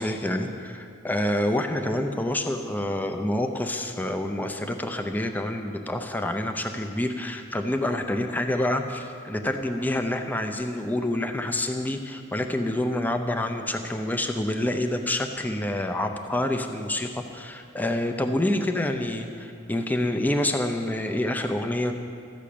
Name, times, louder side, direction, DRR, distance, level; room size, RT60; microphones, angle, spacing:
voice 1, 0.0-21.9, left 1 dB, 10° left, 5 dB, 0.6 m, -27 dB
13.5 x 6.2 x 8.5 m, 2.4 s
head